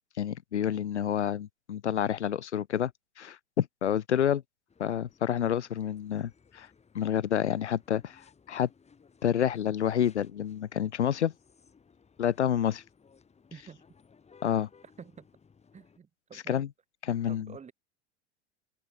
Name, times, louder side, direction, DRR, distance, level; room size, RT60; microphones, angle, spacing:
voice 1, 0.2-2.9 3.2-4.4 4.8-6.7 6.9-8.7 9.2-11.3 12.2-12.8 14.4-14.7 16.3-16.7 17.0-17.5, left 9 dB, 75° left, 1.0 m, -29 dB
sound 1, 4.7-16.0, left 5 dB, 20° left, 4.9 m, -61 dB
voice 2, 13.5-13.8 15.0-15.3 15.7-16.7 17.3-17.7, right 6 dB, 20° right, 2.7 m, -48 dB
figure-of-eight pair, 85°, 35 cm